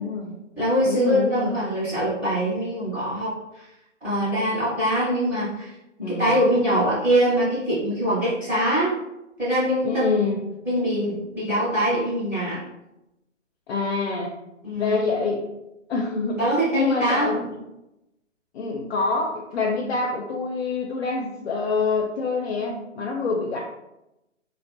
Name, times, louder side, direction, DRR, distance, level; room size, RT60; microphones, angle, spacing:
voice 1, 0.0-0.4 0.8-1.6 6.0-6.4 9.8-10.4 13.7-14.3 14.8-15.4 15.9-16.4 16.7-17.6 18.5-23.6, left 4 dB, 60° left, 0 dB, 0.4 m, -26 dB
voice 2, 0.6-3.6 4.0-5.7 6.1-8.9 9.4-10.1 10.6-12.6 14.6-15.0 16.4-17.3, equal, 5° right, -10 dB, 0.6 m, -23 dB
2.5 x 2.1 x 2.5 m, 0.91 s
figure-of-eight pair, 135°, 38 cm